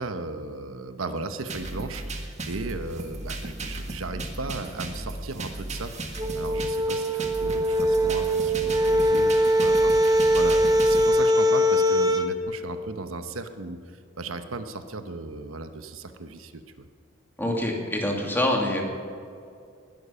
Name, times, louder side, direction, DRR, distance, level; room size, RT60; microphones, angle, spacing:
voice 1, 0.0-16.9, right 3 dB, 90° right, 9 dB, 1.0 m, -36 dB
sound 1, 1.5-11.1, right 2 dB, 35° right, 1.6 m, -35 dB
sound 2, 6.2-12.3, equal, 20° right, 1.0 m, -21 dB
voice 2, 17.4-18.8, left 1 dB, 10° left, 0 dB, 2.4 m, -25 dB
19.5 x 12.0 x 5.7 m, 2.4 s
head